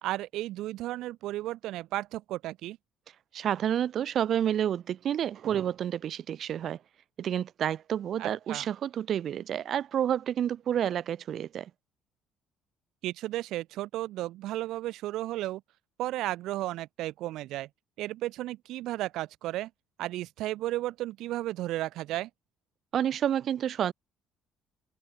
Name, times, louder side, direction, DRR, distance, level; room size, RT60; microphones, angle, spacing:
voice 1, 0.0-2.8 8.2-8.7 13.0-15.6 16.0-17.7 18.0-19.7 20.0-22.3, right 15 dB, 75° right, 2.0 m, -34 dB
voice 2, 3.3-6.8 7.2-11.7 22.9-23.9, right 10 dB, 55° right, 6.3 m, -29 dB
cardioid pair, 100°, 0 cm